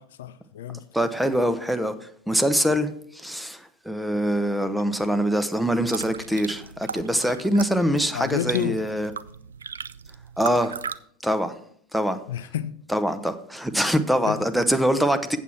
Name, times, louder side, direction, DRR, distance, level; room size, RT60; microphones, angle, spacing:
voice 1, 0.0-0.8 8.1-8.8 12.3-12.7 14.3-14.4, left 10 dB, 75° left, 0.5 m, -30 dB
voice 2, 0.9-9.1 10.4-10.8 11.2-11.5 11.9-12.2 12.9-15.4, equal, ahead, 0.8 m, -24 dB
sound 1, 5.6-11.0, right 6 dB, 90° right, 0.3 m, -37 dB
8.1 x 7.4 x 4.4 m
hypercardioid pair, 90°, 0 cm